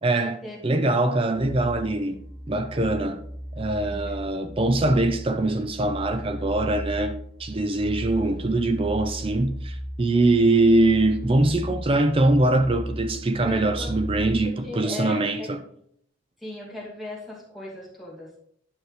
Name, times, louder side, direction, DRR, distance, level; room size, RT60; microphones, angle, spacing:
voice 1, 0.0-2.2 2.5-3.2 3.6-15.6, right 2 dB, 25° right, 0.4 m, -23 dB
sound 1, 1.3-14.4, equal, 45° right, 1.4 m, -36 dB
voice 2, 3.8-4.2 8.5-8.6 13.4-15.6 16.4-18.4, left 2 dB, ahead, 2.4 m, -38 dB
10.0 x 6.3 x 3.2 m
head